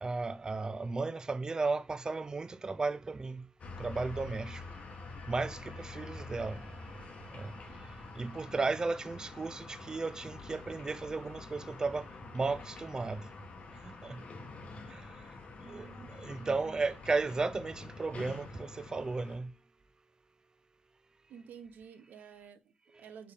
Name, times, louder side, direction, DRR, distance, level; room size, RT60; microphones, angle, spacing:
voice 1, 0.0-3.4 3.8-4.6 5.3-6.6 7.3-7.5 8.2-12.1 12.3-13.2 14.0-14.2 14.9-15.0 15.7-15.9 16.2-19.5, right 3 dB, 25° right, 0.4 m, -34 dB
sound 1, 3.6-19.4, left 3 dB, 45° left, 1.0 m, -47 dB
voice 2, 15.6-16.8 21.3-23.3, right 6 dB, 80° right, 0.6 m, -51 dB
4.5 x 3.3 x 3.4 m
cardioid pair, 115°, 3 cm